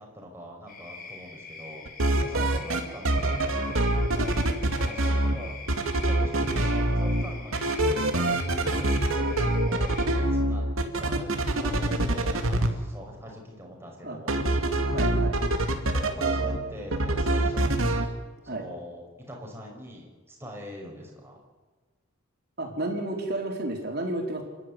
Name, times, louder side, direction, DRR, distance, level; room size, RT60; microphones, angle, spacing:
voice 1, 0.0-1.8 2.2-3.6 4.7-5.6 6.0-14.4 15.9-18.0 18.4-21.4, equal, 10° right, 0 dB, 5.6 m, -43 dB
sound 1, 0.7-10.1, left 4 dB, 40° left, 4.9 m, -44 dB
sound 2, 1.9-2.8 3.0-5.3 5.7-7.2 7.5-12.7 14.3-16.6 16.9-18.1, right 1 dB, 75° right, 2.4 m, -24 dB
voice 2, 14.7-15.4 18.5-18.7 22.6-24.4, right 1 dB, 50° right, 1 dB, 4.5 m, -32 dB
28.0 x 12.5 x 9.7 m, 1.3 s
head